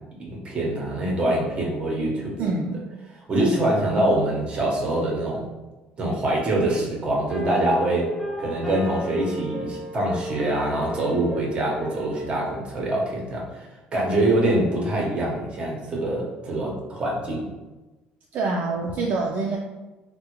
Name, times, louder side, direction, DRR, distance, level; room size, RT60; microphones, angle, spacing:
voice 1, 0.2-2.3 3.3-5.4 6.0-8.1 8.4-17.4, right 1 dB, 35° right, -2 dB, 0.9 m, -24 dB
voice 2, 2.4-2.8 18.3-19.6, right 3 dB, 55° right, -1 dB, 0.4 m, -25 dB
sound 1, 7.3-12.5, equal, 5° left, 0.5 m, -33 dB
3.4 x 2.1 x 2.9 m, 1.1 s
cardioid pair, 120°, 3 cm